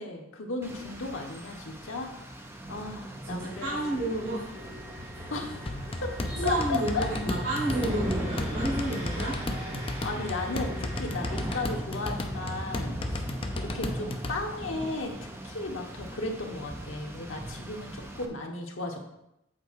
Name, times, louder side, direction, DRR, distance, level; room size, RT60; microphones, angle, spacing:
voice 1, 0.0-2.1 2.7-4.3 5.3-5.7 6.0-6.1 6.4-7.1 9.2-9.5 9.9-13.2 13.6-19.1, left 3 dB, 80° left, 2 dB, 1.2 m, -35 dB
Rain, 0.6-18.3, right 1 dB, 10° right, 0.7 m, -40 dB
voice 2, 3.3-4.4 5.1-5.2 6.3-9.3 17.8-17.9, right 1 dB, 70° right, -8 dB, 2.7 m, -31 dB
sound 1, 3.4-11.6, equal, 30° right, 2.4 m, -41 dB
sound 2, 5.7-14.4, left 1 dB, 30° left, 0.6 m, -34 dB
8.0 x 4.3 x 4.7 m, 0.83 s
head